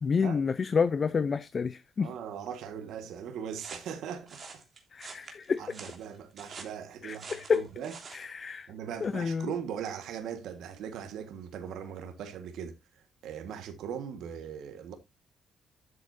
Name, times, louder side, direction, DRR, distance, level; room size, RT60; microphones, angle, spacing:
voice 1, 0.0-2.1 4.9-5.6 7.0-7.6 8.1-8.7 9.0-9.5, left 5 dB, 40° left, 0.6 m, -29 dB
voice 2, 2.0-4.6 5.6-7.9 8.7-15.0, right 8 dB, 80° right, 1.6 m, -40 dB
sound 1, 3.5-8.3, right 4 dB, 45° right, 3.1 m, -47 dB
12.5 x 7.8 x 2.7 m
cardioid pair, 90°, 0 cm